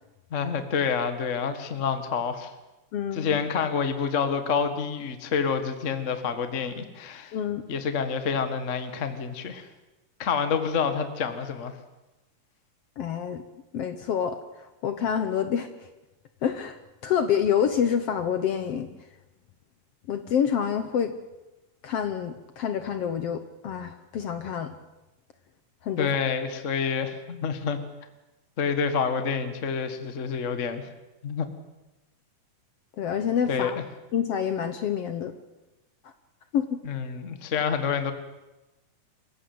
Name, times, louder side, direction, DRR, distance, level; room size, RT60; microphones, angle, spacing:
voice 1, 0.3-2.5 3.1-7.4 7.7-9.7 10.2-11.7 26.0-27.8 28.6-30.9 31.2-31.5 33.5-33.8 36.8-38.1, left 6 dB, 40° left, 9 dB, 1.1 m, -28 dB
voice 2, 2.9-3.4 7.3-7.6 13.0-13.4 13.7-15.7 16.4-16.8 17.0-18.9 20.1-21.1 21.8-24.7 25.8-26.1 33.0-33.8 34.1-35.3 36.5-36.8, left 8 dB, 65° left, 9 dB, 1.6 m, -27 dB
26.0 x 16.0 x 7.9 m, 1.0 s
omnidirectional pair, 3.8 m